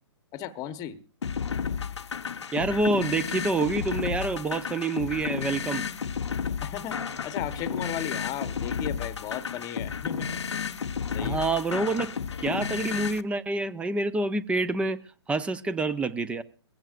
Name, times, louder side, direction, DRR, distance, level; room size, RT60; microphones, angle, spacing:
voice 1, 0.3-1.0 6.6-10.4 11.1-11.4, left 10 dB, 25° left, 1.0 m, -35 dB
sound 1, 1.2-13.2, left 6 dB, 80° left, 0.8 m, -32 dB
voice 2, 2.5-5.8 11.2-15.0 15.3-16.4, right 2 dB, 10° right, 0.6 m, -27 dB
21.5 x 16.0 x 2.5 m
hypercardioid pair, 135°, 14 cm